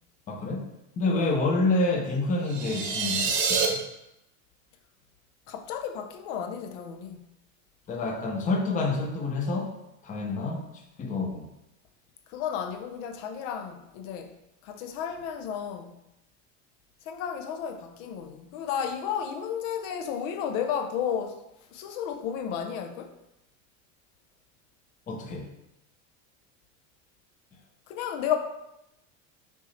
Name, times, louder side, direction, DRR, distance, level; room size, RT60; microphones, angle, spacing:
voice 1, 0.3-3.8 7.9-9.7 10.0-10.7 11.0-11.5 25.1-25.5, left 2 dB, 20° left, 0.5 m, -28 dB
sound 1, 2.5-3.7, right 5 dB, 60° right, 0.8 m, -27 dB
voice 2, 5.5-7.2 12.3-14.3 14.6-15.9 17.1-21.4 21.7-23.1 27.9-28.4, left 8 dB, 70° left, 0.6 m, -32 dB
5.2 x 2.7 x 3.1 m
supercardioid pair, 135°, 39 cm